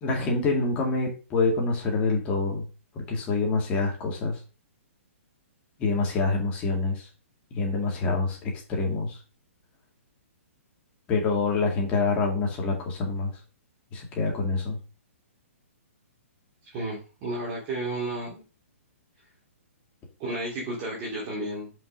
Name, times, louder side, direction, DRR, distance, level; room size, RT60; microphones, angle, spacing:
voice 1, 0.0-2.6 2.9-4.4 5.8-7.1 7.5-9.2 11.1-13.3 13.9-14.8, left 3 dB, 15° left, 0 dB, 2.1 m, -26 dB
voice 2, 16.6-18.4 20.2-21.7, right 2 dB, 25° right, -5 dB, 2.7 m, -32 dB
5.7 x 5.2 x 5.2 m, 0.34 s
hypercardioid pair, 170°, 8 cm